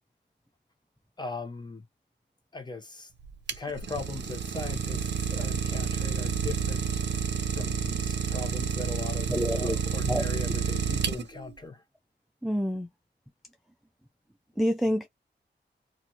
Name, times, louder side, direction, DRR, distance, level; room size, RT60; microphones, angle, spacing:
voice 1, 1.2-1.8 2.5-3.1 3.5-11.8, left 3 dB, 25° left, 0.8 m, -39 dB
Idling, 3.2-11.5, right 6 dB, 70° right, 0.6 m, -30 dB
voice 2, 9.3-9.8 10.0-10.2 12.4-12.9 14.6-15.1, equal, ahead, 0.4 m, -27 dB
2.7 x 2.5 x 2.9 m
wide cardioid pair, 95°, 19 cm